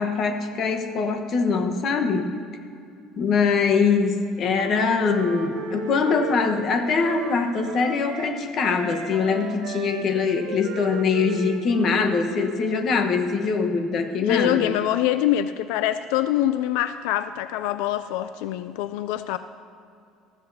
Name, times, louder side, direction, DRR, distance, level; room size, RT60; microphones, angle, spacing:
voice 1, 0.0-2.3 3.2-14.7, left 5 dB, 40° left, 6 dB, 1.1 m, -23 dB
Wind instrument woodwind instrument, 4.5-8.3 8.6-12.7, right 5 dB, 65° right, 2.4 m, -36 dB
voice 2, 14.2-19.4, left 12 dB, 90° left, 11 dB, 0.4 m, -24 dB
19.5 x 14.5 x 2.7 m, 2.5 s
cardioid pair, 160°, 0 cm